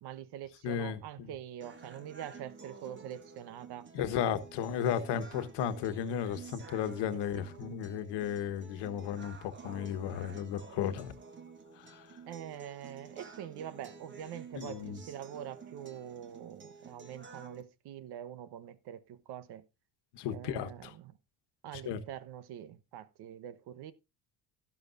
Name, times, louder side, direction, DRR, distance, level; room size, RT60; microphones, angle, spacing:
voice 1, 0.0-4.3 7.1-7.5 12.3-19.6 20.3-21.2 21.6-23.9, right 10 dB, 70° right, 1.1 m, -45 dB
voice 2, 0.6-1.3 3.9-11.1 11.8-12.1 14.5-15.0 20.1-20.9 21.7-22.0, left 9 dB, 85° left, 1.4 m, -34 dB
sound 1, 1.6-17.6, right 4 dB, 30° right, 1.5 m, -51 dB
12.5 x 12.0 x 2.6 m
cardioid pair, 135°, 40 cm